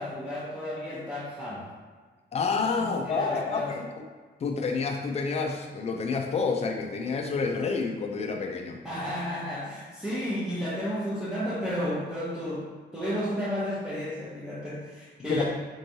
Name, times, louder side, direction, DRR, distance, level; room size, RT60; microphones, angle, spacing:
voice 1, 0.0-1.7 2.6-3.8 8.8-15.4, equal, ahead, -10 dB, 0.7 m, -32 dB
voice 2, 2.3-3.9 4.4-8.8 15.3-15.4, left 4 dB, 35° left, 3 dB, 0.4 m, -29 dB
4.4 x 3.0 x 2.6 m, 1.5 s
wide cardioid pair, 175°, 19 cm